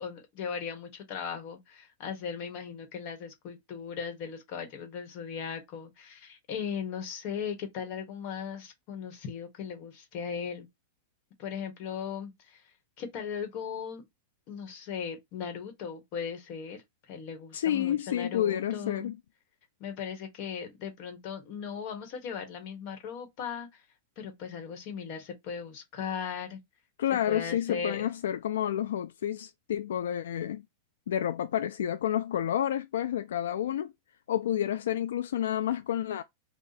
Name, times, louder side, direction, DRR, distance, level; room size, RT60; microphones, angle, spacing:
voice 1, 0.0-10.7 11.4-12.6 13.0-14.0 14.5-19.1 19.8-23.8 24.2-26.6 27.3-28.1, left 7 dB, 45° left, 1.3 m, -38 dB
voice 2, 17.5-19.2 27.0-30.6 31.1-33.9 34.3-36.2, left 10 dB, 85° left, 0.3 m, -30 dB
2.7 x 2.3 x 4.0 m
supercardioid pair, 140°, 0 cm